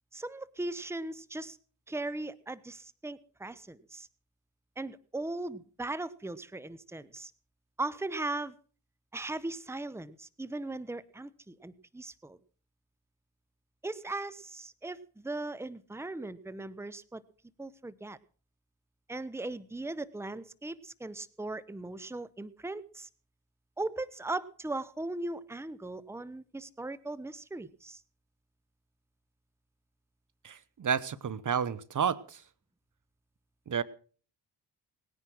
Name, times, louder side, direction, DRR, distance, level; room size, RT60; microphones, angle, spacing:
voice 1, 0.1-1.6 1.9-4.1 4.8-7.3 7.8-8.5 9.1-12.4 13.8-17.2 17.6-18.2 19.1-23.1 23.8-28.0, right 2 dB, 5° right, 19 dB, 1.1 m, -38 dB
voice 2, 30.4-32.4 33.7-33.8, right 7 dB, 45° right, 18 dB, 1.1 m, -31 dB
19.5 x 10.0 x 6.2 m, 0.43 s
hypercardioid pair, 50°, 44 cm